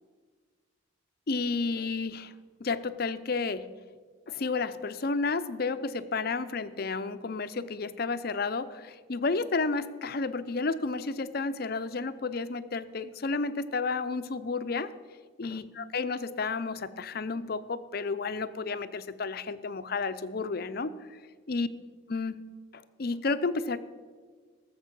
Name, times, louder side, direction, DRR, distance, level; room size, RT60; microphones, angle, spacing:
voice 1, 1.3-2.3 2.6-3.7 4.3-14.9 15.4-20.9 21.5-21.7 22.1-22.4 22.7-23.8, left 4 dB, 50° left, 12 dB, 0.6 m, -31 dB
18.5 x 7.3 x 6.0 m, 1.6 s
head